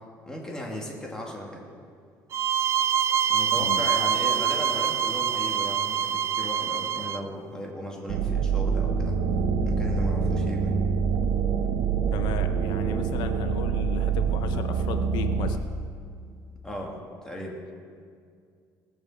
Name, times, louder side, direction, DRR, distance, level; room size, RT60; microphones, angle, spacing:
voice 1, 0.3-1.6 3.3-9.2 9.6-10.8 16.6-17.6, left 1 dB, 10° left, -2 dB, 2.5 m, -36 dB
sound 1, 2.3-7.2, right 8 dB, 40° right, 0.4 m, -25 dB
voice 2, 3.6-3.9 12.1-15.6, left 10 dB, 80° left, 8 dB, 0.8 m, -35 dB
sound 2, 8.1-15.6, right 6 dB, 80° right, 1.1 m, -25 dB
19.0 x 7.2 x 7.4 m, 2.2 s
cardioid pair, 145°, 7 cm